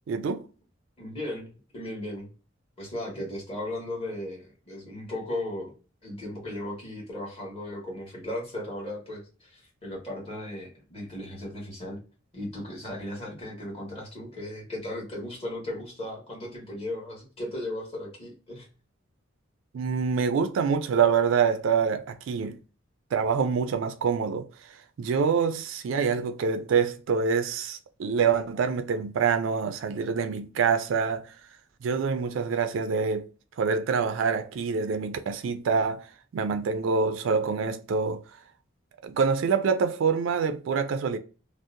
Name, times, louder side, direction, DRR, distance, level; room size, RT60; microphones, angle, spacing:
voice 1, 0.1-0.5 19.7-22.6 23.1-31.4 31.8-33.3 33.6-38.2 39.0-41.2, right 6 dB, 70° right, 0.3 m, -26 dB
voice 2, 1.0-2.3 2.8-5.7 6.0-12.0 12.3-18.7, left 1 dB, 30° left, 1.2 m, -36 dB
2.7 x 2.0 x 2.4 m
head